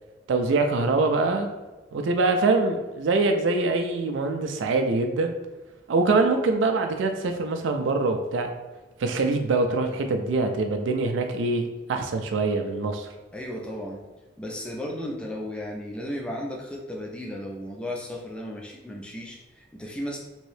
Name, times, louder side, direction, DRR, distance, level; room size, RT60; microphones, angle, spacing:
voice 1, 0.3-1.5 1.9-5.3 5.9-8.5 9.0-13.1, right 3 dB, 90° right, 5 dB, 0.4 m, -24 dB
voice 2, 13.3-14.1 14.4-20.2, left 1 dB, 5° left, -1 dB, 0.4 m, -35 dB
3.0 x 2.7 x 3.2 m, 1.2 s
head